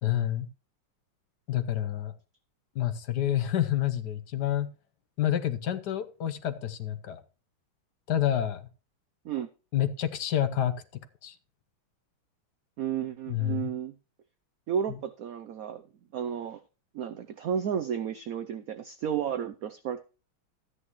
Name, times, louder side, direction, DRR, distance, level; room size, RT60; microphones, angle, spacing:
voice 1, 0.0-0.5 1.5-2.1 2.7-4.7 5.2-7.2 8.1-8.7 9.7-10.7 11.2-11.3 13.3-13.7, left 11 dB, 60° left, 1.4 m, -28 dB
voice 2, 12.8-13.9 14.7-15.8 16.1-16.6 16.9-20.0, right 8 dB, 90° right, 0.7 m, -32 dB
13.5 x 9.6 x 3.0 m
omnidirectional pair, 2.2 m